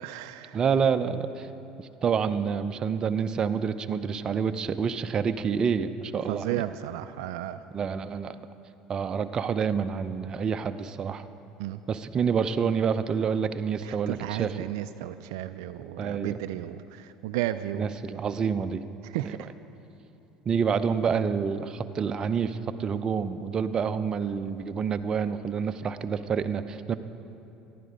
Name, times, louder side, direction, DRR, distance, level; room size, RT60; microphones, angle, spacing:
voice 1, 0.0-0.6 6.3-7.6 11.6-11.8 13.8-17.9 19.0-19.5, right 13 dB, 80° right, 10 dB, 0.4 m, -33 dB
voice 2, 0.5-1.5 1.8-6.6 7.7-8.4 8.9-11.2 11.9-14.6 16.0-16.4 17.7-18.8 19.2-19.4 20.5-27.0, right 6 dB, 35° right, 10 dB, 0.6 m, -28 dB
14.5 x 11.0 x 5.1 m, 3.0 s
supercardioid pair, 85°, 2 cm